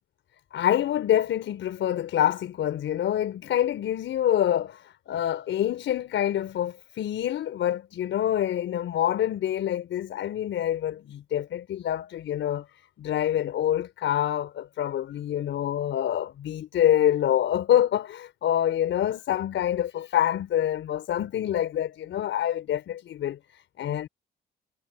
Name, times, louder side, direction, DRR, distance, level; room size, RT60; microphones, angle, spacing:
voice 1, 0.5-12.7 13.0-24.1, left 11 dB, 75° left, 5.4 m, -26 dB
cardioid pair, 90°, 20 cm